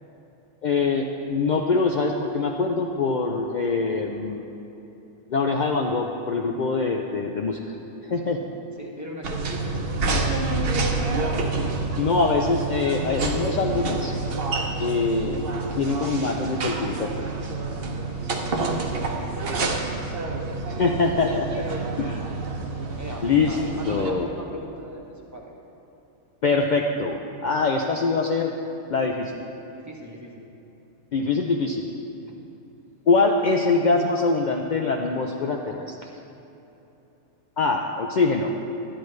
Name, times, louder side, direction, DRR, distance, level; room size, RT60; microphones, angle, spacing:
voice 1, 0.6-4.5 5.3-7.7 8.0-8.4 12.0-14.1 14.8-15.4 15.7-17.1 20.8-21.5 22.0-22.1 23.2-23.5 23.9-24.3 26.4-28.5 28.9-29.4 31.1-31.9 33.1-35.9 37.6-38.5, left 4 dB, 75° left, 1 dB, 0.4 m, -23 dB
voice 2, 8.7-10.7 17.5-20.2 21.6-22.1 22.9-25.5 29.7-30.5 32.2-32.5, equal, 15° right, -3 dB, 0.8 m, -41 dB
sound 1, 9.2-24.1, right 3 dB, 50° right, 0.9 m, -28 dB
12.0 x 10.0 x 3.2 m, 3.0 s
omnidirectional pair, 1.4 m